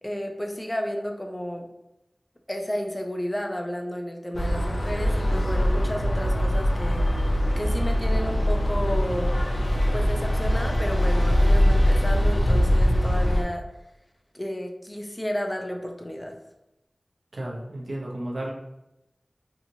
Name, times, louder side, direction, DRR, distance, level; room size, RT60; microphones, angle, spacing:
voice 1, 0.0-1.7 2.5-7.0 7.6-9.4 9.9-13.6 14.3-16.4, equal, 25° left, 3 dB, 0.4 m, -32 dB
sound 1, 4.3-13.4, equal, 85° left, 0.4 m, -22 dB
voice 2, 17.3-18.5, right 1 dB, 80° right, -2 dB, 0.6 m, -33 dB
2.8 x 2.6 x 2.6 m, 0.91 s
wide cardioid pair, 40°, 0 cm